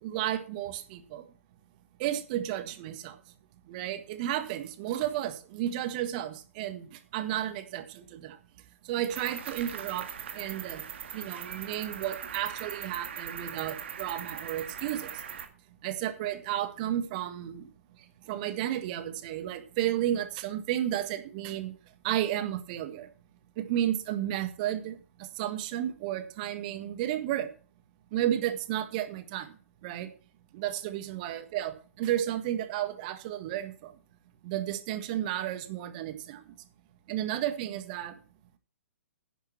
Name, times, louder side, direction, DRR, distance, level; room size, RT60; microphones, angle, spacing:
voice 1, 0.0-1.2 2.0-3.2 3.7-8.4 8.8-10.1 10.3-10.8 11.1-15.2 15.8-17.7 18.3-21.7 22.0-23.1 23.6-27.5 28.1-29.5 29.8-30.1 30.5-33.9 34.4-36.5 37.1-38.2, right 12 dB, 35° right, 10 dB, 1.7 m, -32 dB
Cricket, 9.1-15.5, right 8 dB, 50° right, 2.0 m, -40 dB
10.5 x 10.5 x 4.6 m, 0.37 s
figure-of-eight pair, 120°, 8 cm